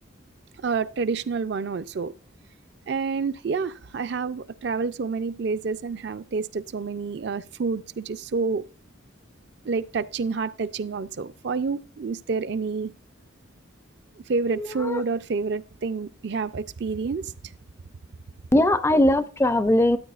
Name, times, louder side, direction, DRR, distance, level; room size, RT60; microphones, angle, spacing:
voice 1, 0.6-2.1 2.9-8.6 9.6-12.9 14.3-17.3, right 4 dB, 55° right, 0.4 m, -28 dB
voice 2, 14.6-15.0 18.5-20.0, left 1 dB, 15° left, 0.4 m, -20 dB
13.5 x 8.9 x 2.4 m
head